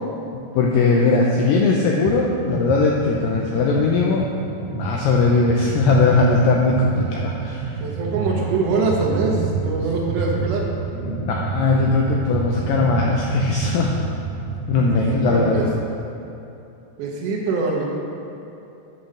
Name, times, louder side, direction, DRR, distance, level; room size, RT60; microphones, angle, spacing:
voice 1, 0.5-4.3 4.7-7.8 11.0-14.0 14.7-15.7, left 3 dB, 80° left, -1 dB, 2.0 m, -19 dB
sound 1, 2.1-2.2 2.5-15.8, right 5 dB, 80° right, 2.3 m, -29 dB
voice 2, 7.8-10.7 15.0-15.6 17.0-17.9, right 3 dB, 65° right, -2 dB, 2.2 m, -23 dB
8.6 x 5.5 x 6.5 m, 2.9 s
omnidirectional pair, 4.7 m